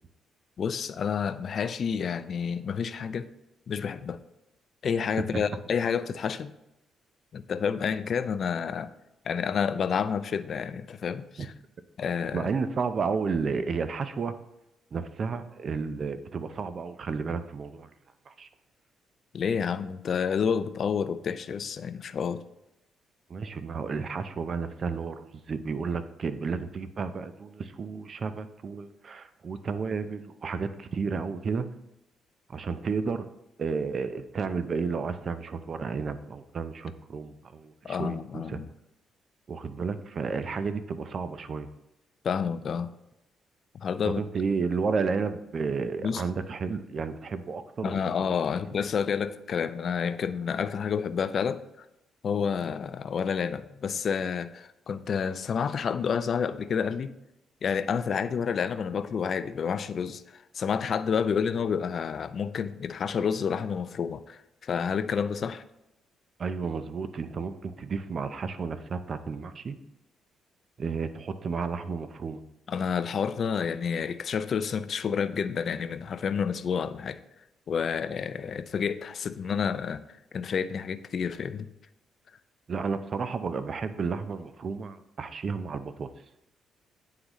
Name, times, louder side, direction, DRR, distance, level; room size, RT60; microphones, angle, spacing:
voice 1, 0.6-3.3 3.7-4.2 4.8-6.5 7.3-8.9 9.2-11.5 12.0-12.5 19.3-22.4 37.8-38.7 42.2-42.9 43.7-44.2 46.0-46.2 47.8-51.6 52.2-57.1 57.6-65.6 72.7-77.2 77.7-80.0 80.3-81.7, left 6 dB, 55° left, 13 dB, 0.4 m, -29 dB
voice 2, 12.3-14.3 14.9-17.9 18.3-18.5 23.3-31.7 32.5-33.3 33.6-38.6 39.5-41.7 44.0-48.3 66.4-69.8 70.8-72.4 82.7-86.1, right 5 dB, 45° right, 11 dB, 0.5 m, -32 dB
9.5 x 3.8 x 3.0 m, 0.90 s
cardioid pair, 90°, 0 cm